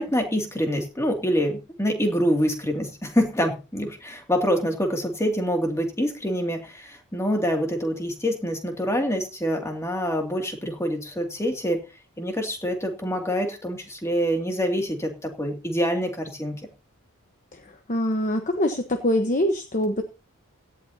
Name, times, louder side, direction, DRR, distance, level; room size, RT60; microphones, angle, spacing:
voice 1, 0.0-11.8 12.2-16.6, equal, 15° left, 3 dB, 2.4 m, -26 dB
voice 2, 17.9-20.0, left 1 dB, 35° left, 6 dB, 1.1 m, -24 dB
17.0 x 12.0 x 2.8 m, 0.32 s
head